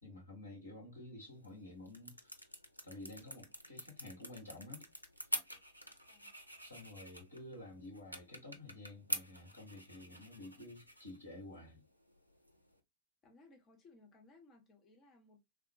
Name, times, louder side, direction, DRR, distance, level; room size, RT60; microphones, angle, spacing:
voice 1, 0.0-2.5 2.8-4.9 6.6-11.8, left 2 dB, 85° left, 1.7 m, -51 dB
sound 1, 1.3-12.8, equal, 90° right, 0.4 m, -47 dB
voice 2, 13.2-15.4, left 3 dB, 30° left, 0.6 m, -63 dB
3.4 x 2.1 x 2.3 m
figure-of-eight pair, 90°, 0 cm